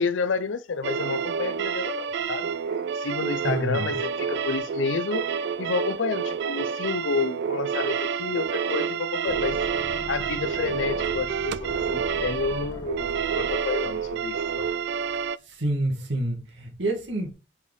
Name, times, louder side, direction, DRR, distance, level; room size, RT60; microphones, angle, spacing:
voice 1, 0.0-2.5 2.9-9.6 10.1-14.7, left 4 dB, 90° left, 0.6 m, -30 dB
sound 1, 0.8-15.4, right 6 dB, 65° right, 0.3 m, -28 dB
voice 2, 3.4-4.0 15.4-17.3, right 1 dB, 85° right, 1.7 m, -28 dB
sound 2, 9.3-15.3, equal, 15° left, 1.5 m, -42 dB
5.6 x 4.9 x 4.8 m
head